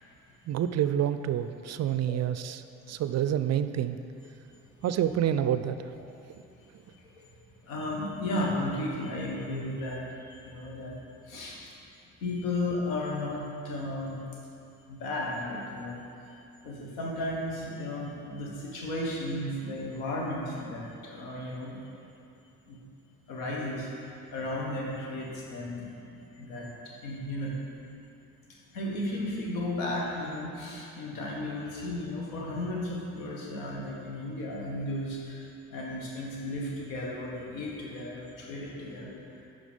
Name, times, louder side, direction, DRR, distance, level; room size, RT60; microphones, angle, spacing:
voice 1, 0.5-4.0 4.8-5.9, right 10 dB, 40° right, 11 dB, 0.4 m, -28 dB
voice 2, 6.6-7.2 7.6-11.7 12.2-14.4 14.9-22.0 22.6-22.8 23.3-25.9 26.1-27.5 28.5-39.4, left 1 dB, 85° left, -3 dB, 1.4 m, -35 dB
11.0 x 3.9 x 5.1 m, 2.8 s
hypercardioid pair, 45°, 40 cm